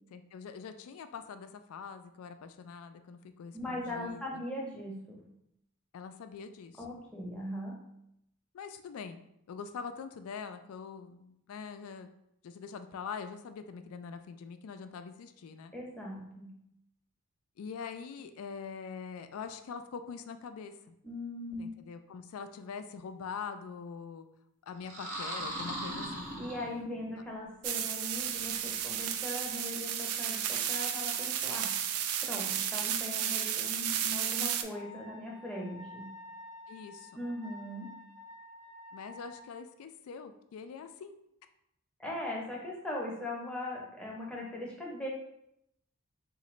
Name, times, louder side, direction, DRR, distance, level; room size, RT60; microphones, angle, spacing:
voice 1, 0.1-4.4 5.9-6.8 8.5-9.2 9.5-12.1 12.4-15.7 17.6-20.9 21.6-24.3 24.6-26.4 36.7-37.1 38.9-41.2, left 6 dB, 80° left, 9 dB, 0.3 m, -44 dB
voice 2, 3.5-5.2 6.8-7.7 15.7-16.5 21.0-21.7 26.4-31.7 32.2-36.0 37.1-37.9 42.0-45.1, left 1 dB, 5° left, -3 dB, 0.6 m, -39 dB
sound 1, 24.8-27.1, equal, 55° right, 0.9 m, -38 dB
sound 2, 27.6-34.6, right 9 dB, 85° right, 0.3 m, -33 dB
Wind instrument woodwind instrument, 34.7-39.6, left 2 dB, 35° right, 0.5 m, -50 dB
3.8 x 2.5 x 3.1 m, 0.78 s
head